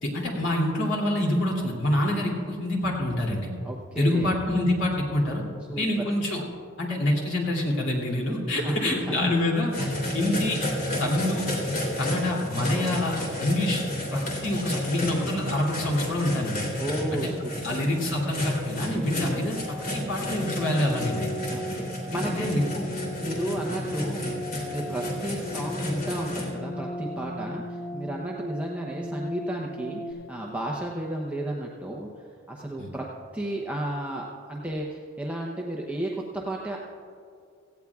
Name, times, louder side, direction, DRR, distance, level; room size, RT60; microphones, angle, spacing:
voice 1, 0.0-3.5 4.0-5.4 5.7-6.4 6.8-9.7 10.1-10.6 11.0-11.4 12.0-13.8 14.1-16.7 17.1-17.3 17.6-21.3 22.1-22.9 32.8-32.9, left 1 dB, 65° left, -2 dB, 2.8 m, -26 dB
voice 2, 3.6-4.3 5.7-5.9 8.5-8.8 9.1-9.3 9.8-9.9 12.6-12.9 16.8-17.8 19.1-19.5 21.5-22.6 23.2-24.3 24.7-32.1 32.5-33.1 33.3-36.8, right 1 dB, 5° right, -2 dB, 0.8 m, -33 dB
sound 1, 9.7-26.4, left 1 dB, 50° left, 3.1 m, -32 dB
sound 2, 19.5-30.1, left 1 dB, 20° left, 2.7 m, -36 dB
17.5 x 15.5 x 2.4 m, 2.4 s
head